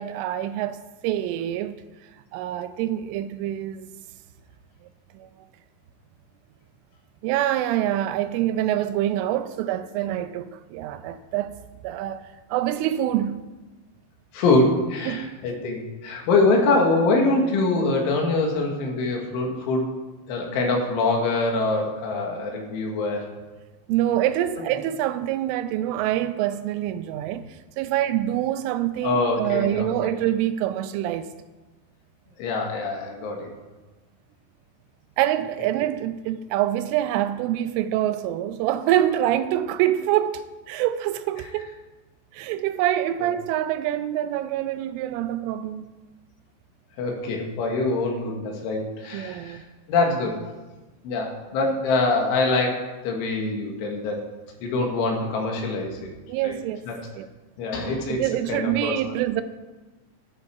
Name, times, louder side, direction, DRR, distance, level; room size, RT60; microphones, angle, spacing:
voice 1, 0.0-1.8 2.3-3.9 5.1-5.3 7.2-11.5 11.8-12.2 12.5-13.4 15.1-15.3 23.9-27.5 27.8-31.3 35.2-41.7 42.3-45.9 49.1-49.6 56.3-56.8 57.2-57.3 58.1-59.4, right 12 dB, 85° right, 3.2 m, -25 dB
voice 2, 14.3-19.9 20.3-23.3 29.0-30.1 32.4-33.5 47.0-49.6 49.9-50.4 51.0-54.3 54.6-56.1 56.4-56.5 56.9-57.1 57.6-59.0, left 3 dB, 75° left, 4.4 m, -24 dB
13.5 x 12.5 x 4.8 m
omnidirectional pair, 5.6 m